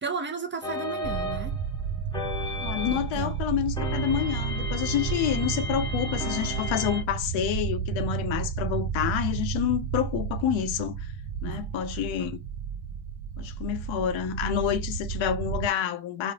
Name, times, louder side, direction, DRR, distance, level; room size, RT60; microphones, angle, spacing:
voice 1, 0.0-1.5 2.9-3.4 11.5-11.6, right 5 dB, 25° right, 0.6 m, -34 dB
sound 1, 0.6-3.2 3.8-7.0, left 2 dB, 10° left, 0.8 m, -34 dB
sound 2, 1.0-15.7, right 7 dB, 65° right, 0.5 m, -32 dB
voice 2, 2.6-11.1 11.4-12.4 13.4-16.3, left 10 dB, 75° left, 0.6 m, -28 dB
3.1 x 2.0 x 2.7 m
hypercardioid pair, 45°, 48 cm